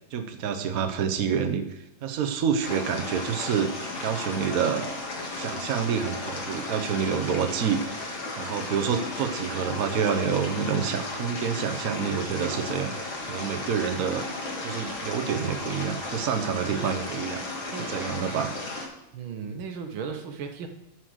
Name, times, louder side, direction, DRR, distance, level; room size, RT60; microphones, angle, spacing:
voice 1, 0.1-4.8 5.3-7.8 8.4-12.9 13.2-14.2 14.6-17.4 17.8-18.5, right 7 dB, 55° right, 6 dB, 1.2 m, -28 dB
sound 1, 2.6-18.9, left 2 dB, 85° left, 2.7 m, -34 dB
voice 2, 19.1-20.7, right 6 dB, 85° right, 6 dB, 1.9 m, -35 dB
11.5 x 6.4 x 6.3 m, 0.85 s
omnidirectional pair, 2.2 m